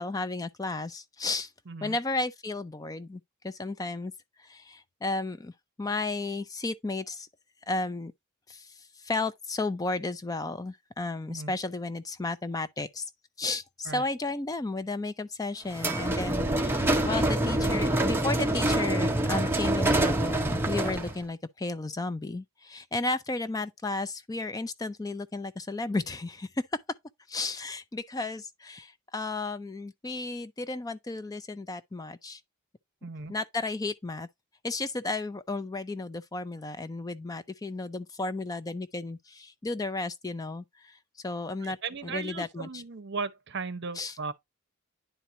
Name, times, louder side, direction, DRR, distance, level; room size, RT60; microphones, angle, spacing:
voice 1, 0.0-1.5 1.8-4.1 4.4-5.5 5.8-7.3 7.7-8.1 8.5-13.1 13.4-26.8 27.3-32.4 33.3-34.3 34.6-41.0 41.2-41.8 42.0-42.8 43.9-44.2, left 3 dB, 15° left, 0.4 m, -33 dB
voice 2, 1.7-2.0 11.3-11.5 13.9-14.0 33.0-33.3 41.6-44.3, right 4 dB, 55° right, 0.8 m, -36 dB
sound 1, 15.7-21.2, right 1 dB, 10° right, 0.8 m, -26 dB
10.0 x 4.3 x 2.6 m
head